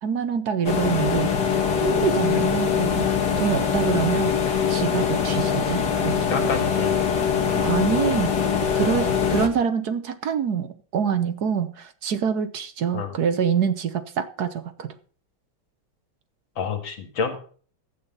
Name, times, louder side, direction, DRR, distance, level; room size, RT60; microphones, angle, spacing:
voice 1, 0.0-4.3 4.7-6.5 7.5-8.3 8.7-14.9, right 7 dB, 60° right, 10 dB, 1.4 m, -26 dB
sound 1, 0.7-9.5, left 7 dB, 60° left, 2.0 m, -23 dB
voice 2, 6.3-6.9 12.9-13.1 16.6-17.4, left 5 dB, 80° left, 5 dB, 2.8 m, -28 dB
12.0 x 8.4 x 5.5 m, 0.43 s
omnidirectional pair, 2.1 m